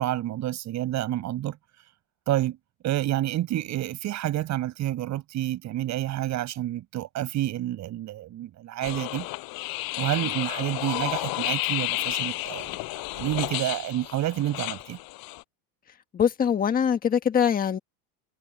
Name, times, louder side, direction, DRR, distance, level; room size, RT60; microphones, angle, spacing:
voice 1, 0.0-1.6 2.3-2.6 2.8-9.3 10.0-12.7 13.1-15.0, right 13 dB, 35° right, 8.0 m, -29 dB
sound 1, 8.8-15.4, left 23 dB, 50° left, 7.4 m, -31 dB
voice 2, 16.1-17.8, left 8 dB, 20° left, 1.5 m, -23 dB
supercardioid pair, 160°, 46 cm